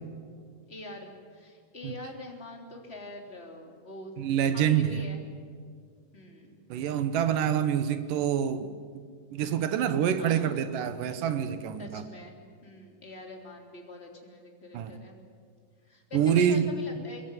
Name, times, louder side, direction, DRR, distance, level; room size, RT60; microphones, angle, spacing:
voice 1, 0.7-4.1 4.5-5.2 6.1-6.6 10.0-10.5 11.8-12.4 12.6-15.2 15.8-17.2, left 2 dB, 20° left, 1 dB, 3.5 m, -44 dB
voice 2, 4.2-4.9 6.7-8.7 9.3-12.0 14.7-14.9 16.1-16.7, right 9 dB, 80° right, 11 dB, 2.7 m, -26 dB
23.5 x 22.0 x 9.3 m, 2.1 s
omnidirectional pair, 3.8 m